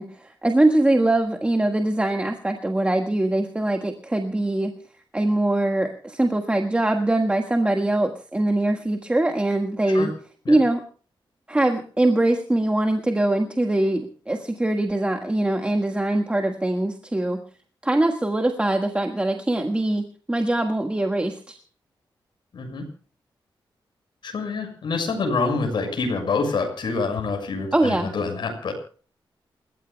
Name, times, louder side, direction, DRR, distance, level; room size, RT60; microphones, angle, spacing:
voice 1, 0.0-4.7 5.1-10.1 10.5-10.8 11.5-17.4 17.8-21.6 27.7-28.1, right 1 dB, 15° right, 4 dB, 1.6 m, -22 dB
voice 2, 22.5-22.8 24.2-28.7, left 4 dB, 65° left, 3 dB, 6.8 m, -26 dB
29.0 x 16.0 x 2.2 m, 0.41 s
wide cardioid pair, 135°, 9 cm